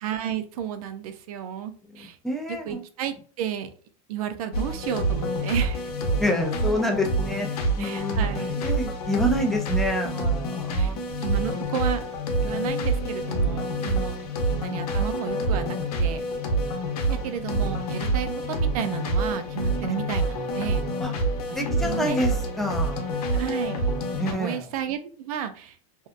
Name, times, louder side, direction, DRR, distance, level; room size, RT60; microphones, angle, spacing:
voice 1, 0.0-2.2 2.5-3.7 4.1-5.8 7.8-8.5 10.8-10.9 11.2-12.0 12.4-14.2 14.5-16.2 17.1-20.9 21.5-22.2 23.3-23.8 24.2-25.8, right 8 dB, 75° right, 9 dB, 0.5 m, -32 dB
voice 2, 2.0-2.8 6.2-8.3 8.6-11.8 14.0-14.3 21.0-21.1 21.6-23.1 24.2-24.7, equal, ahead, 1 dB, 0.3 m, -28 dB
sound 1, 4.5-24.3, right 1 dB, 85° left, 0.7 m, -27 dB
2.7 x 2.1 x 2.4 m, 0.43 s
supercardioid pair, 155°, 19 cm